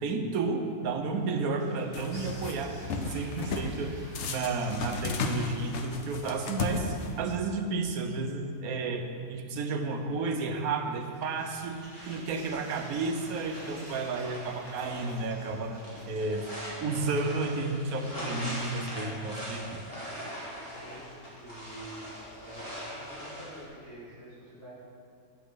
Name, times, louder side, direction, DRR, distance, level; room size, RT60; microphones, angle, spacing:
voice 1, 0.0-11.8 12.1-15.8 16.1-16.4 16.8-19.8, right 3 dB, 90° right, 5 dB, 1.2 m, -32 dB
sound 1, 1.0-7.0 10.5-17.4, right 1 dB, 60° right, 2.0 m, -53 dB
sound 2, 1.9-2.6 2.9-3.7 4.2-7.4, left 3 dB, 60° left, 1.0 m, -34 dB
sound 3, 11.5-23.7, equal, 25° left, 2.0 m, -42 dB
voice 2, 20.6-21.1 21.3-22.6 22.9-24.7, right 1 dB, 45° left, -10 dB, 2.4 m, -47 dB
11.0 x 7.9 x 3.7 m, 2.3 s
omnidirectional pair, 1.5 m